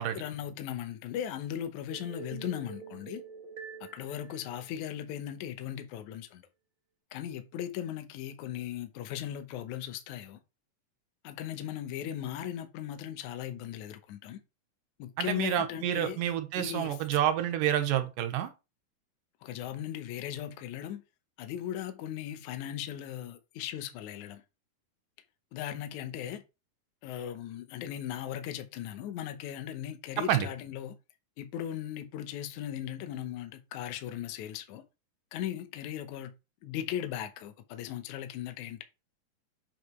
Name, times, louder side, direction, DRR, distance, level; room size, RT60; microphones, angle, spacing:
voice 1, 0.1-3.2 3.8-6.4 7.1-10.4 11.2-14.4 15.0-16.2 16.6-17.0 19.4-21.0 21.4-24.4 25.5-26.4 27.0-31.0 31.4-34.8 35.3-36.3 36.6-38.8, left 10 dB, 70° left, 2.1 m, -38 dB
sound 1, 1.9-5.2, right 6 dB, 35° right, 0.8 m, -47 dB
voice 2, 15.2-18.5 30.3-30.5, right 11 dB, 80° right, 2.5 m, -28 dB
8.0 x 5.2 x 3.1 m
omnidirectional pair, 4.0 m